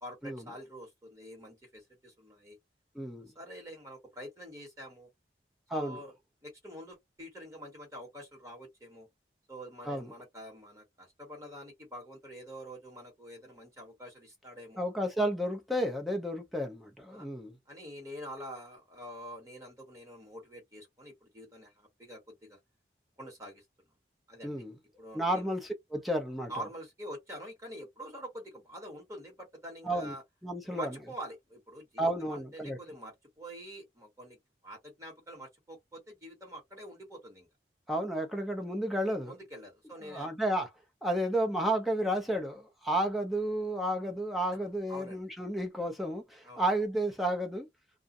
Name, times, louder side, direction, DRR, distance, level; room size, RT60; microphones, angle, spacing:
voice 1, 0.0-2.6 3.3-5.1 5.7-6.1 6.4-9.1 9.5-14.8 17.1-17.3 17.7-22.6 23.2-23.6 24.3-24.6 25.0-25.5 26.5-30.2 30.6-34.4 34.6-37.5 39.2-40.3 44.9-45.2 46.4-46.6, equal, 20° right, 1.4 m, -46 dB
voice 2, 2.9-3.3 5.7-6.0 9.9-10.1 14.8-17.5 24.4-24.7 25.1-26.5 29.8-30.1 30.4-31.0 32.0-32.8 37.9-39.3 40.0-40.7 41.0-47.7, right 1 dB, ahead, 0.5 m, -32 dB
2.5 x 2.3 x 2.5 m
head